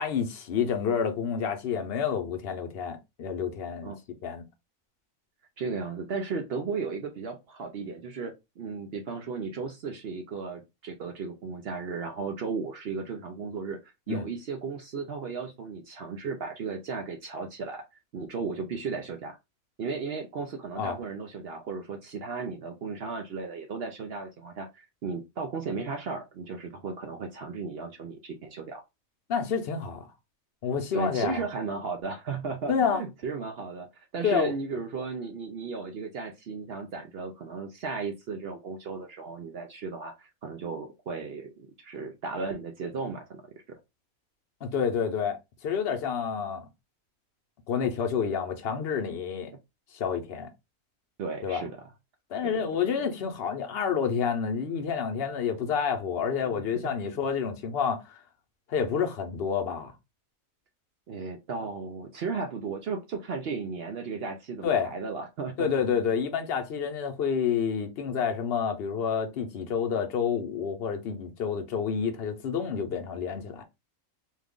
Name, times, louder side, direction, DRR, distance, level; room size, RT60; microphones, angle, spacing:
voice 1, 0.0-3.9 4.2-4.4 14.1-14.3 20.8-21.0 29.3-30.1 30.6-31.4 32.7-33.0 34.2-34.5 44.6-46.7 47.7-49.5 49.9-50.5 51.4-51.6 52.3-58.2 58.7-59.9 64.6-64.9 65.6-73.6, left 7 dB, 55° left, 0.8 m, -29 dB
voice 2, 5.6-13.8 14.1-17.8 18.1-19.4 19.8-28.8 30.9-43.4 51.2-51.9 52.4-53.1 56.4-56.9 61.1-65.7, right 4 dB, 60° right, 0.7 m, -35 dB
3.1 x 2.4 x 3.6 m
omnidirectional pair, 1.4 m